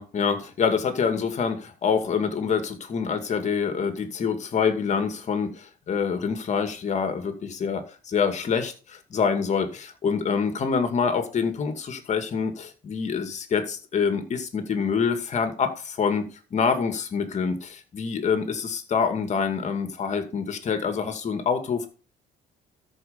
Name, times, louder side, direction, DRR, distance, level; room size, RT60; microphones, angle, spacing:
voice 1, 0.0-21.9, left 6 dB, 45° left, 7 dB, 2.3 m, -26 dB
13.5 x 5.3 x 5.2 m, 0.36 s
cardioid pair, 110°, 17 cm